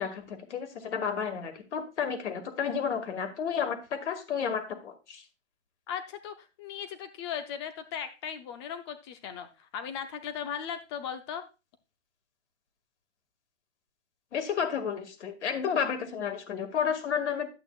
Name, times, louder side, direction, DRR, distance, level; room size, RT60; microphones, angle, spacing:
voice 1, 0.0-5.2 14.3-17.5, left 7 dB, 65° left, 7 dB, 2.1 m, -31 dB
voice 2, 5.9-11.4, left 8 dB, 20° left, 9 dB, 0.6 m, -37 dB
11.0 x 8.4 x 2.4 m, 0.28 s
hypercardioid pair, 145°, 38 cm